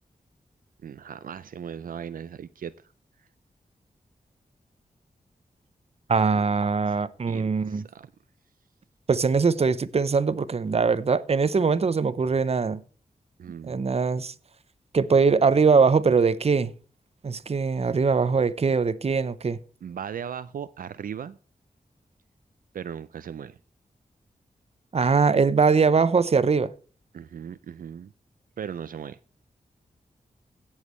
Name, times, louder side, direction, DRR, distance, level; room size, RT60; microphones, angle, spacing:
voice 1, 0.8-2.7 6.9-7.0 7.3-8.1 13.4-13.9 19.8-21.4 22.7-23.6 27.1-28.1 28.6-29.2, right 8 dB, 75° right, 0.4 m, -37 dB
voice 2, 6.1-7.8 9.1-12.8 13.7-14.3 14.9-16.7 17.2-19.6 24.9-26.7, right 5 dB, 45° right, 0.7 m, -22 dB
17.0 x 7.3 x 3.1 m
wide cardioid pair, 75°, 15 cm